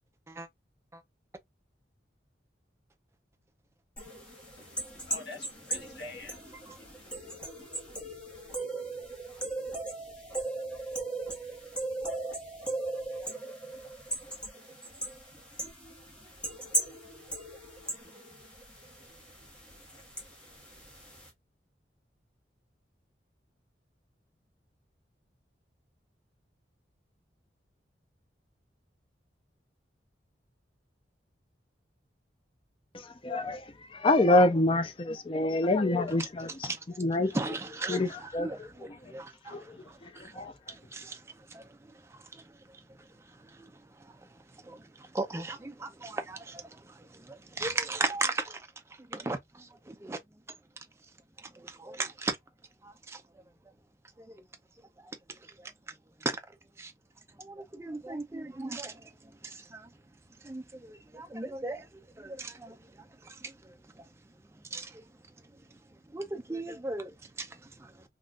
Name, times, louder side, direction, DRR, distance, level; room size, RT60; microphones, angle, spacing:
sound 1, 4.0-21.3, right 2 dB, 5° left, 1.0 m, -38 dB
voice 1, 4.6-7.3, left 3 dB, 65° left, 1.1 m, -47 dB
voice 2, 33.2-33.6 33.9-36.5 37.0-37.4 37.9-38.1 38.3-38.5 39.5-39.6 40.2-40.5, left 2 dB, 30° left, 0.5 m, -25 dB
voice 3, 37.3-50.2 51.4-52.4 52.8-53.2 54.2-54.4 55.0-56.4 56.8-56.9 57.4-59.9 60.4-64.1 64.5-65.1 65.7-65.8 66.1-68.1, right 3 dB, 15° right, 0.5 m, -38 dB
3.6 x 2.4 x 2.3 m
head